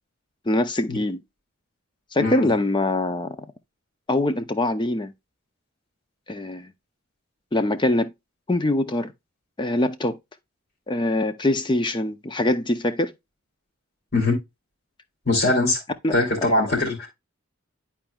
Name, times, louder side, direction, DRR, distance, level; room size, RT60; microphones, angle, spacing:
voice 1, 0.5-1.2 2.1-3.4 4.1-5.1 6.3-6.7 7.5-8.1 8.5-9.1 9.6-10.2 10.9-13.1 16.0-16.5, left 1 dB, 20° left, 0.6 m, -23 dB
voice 2, 15.3-15.8 16.1-17.1, left 2 dB, 50° left, 2.8 m, -21 dB
10.5 x 4.4 x 2.3 m
head